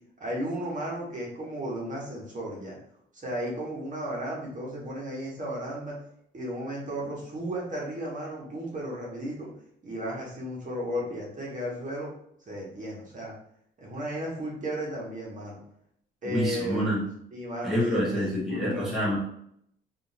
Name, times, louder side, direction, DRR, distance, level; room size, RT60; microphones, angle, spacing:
voice 1, 0.2-2.8 3.1-6.0 6.3-9.5 9.8-12.1 12.5-13.3 13.8-15.6 16.2-16.9 17.3-18.2 18.5-19.0, equal, 40° right, -4 dB, 1.4 m, -34 dB
voice 2, 16.2-17.0 17.6-19.2, equal, ahead, -6 dB, 1.1 m, -27 dB
3.5 x 2.8 x 2.8 m, 0.71 s
cardioid pair, 90°, 20 cm